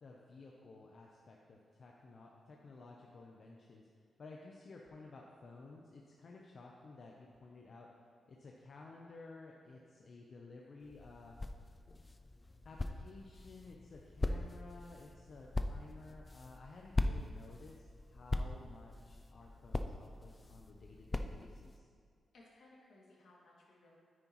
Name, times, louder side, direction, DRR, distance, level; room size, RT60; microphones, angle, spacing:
voice 1, 0.0-3.8 4.2-7.9 8.3-11.4 12.6-21.9, left 3 dB, 55° left, -1 dB, 0.8 m, -54 dB
sound 1, 10.8-21.8, left 2 dB, 25° left, 0.4 m, -41 dB
voice 2, 22.3-24.0, left 2 dB, 75° left, -5 dB, 2.5 m, -62 dB
9.6 x 9.3 x 3.1 m, 2.1 s
cardioid pair, 95°, 0 cm